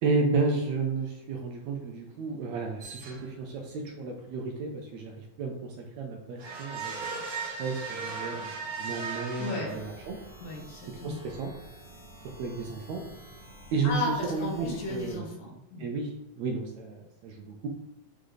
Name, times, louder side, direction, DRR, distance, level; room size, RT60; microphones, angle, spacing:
voice 1, 0.0-10.2 11.0-11.5 12.4-13.0 13.7-14.0 14.3-15.2 15.8-17.7, right 4 dB, 80° right, 2 dB, 1.6 m, -32 dB
sound 1, 2.8-3.5 6.4-10.3, right 4 dB, 50° right, 1.2 m, -37 dB
voice 2, 9.4-9.7 10.4-11.2 13.8-14.1 14.4-15.9, left 1 dB, 75° left, -1 dB, 3.0 m, -34 dB
sound 2, 9.7-15.2, right 1 dB, 50° left, 0.6 m, -50 dB
8.3 x 3.3 x 3.9 m, 0.94 s
omnidirectional pair, 3.9 m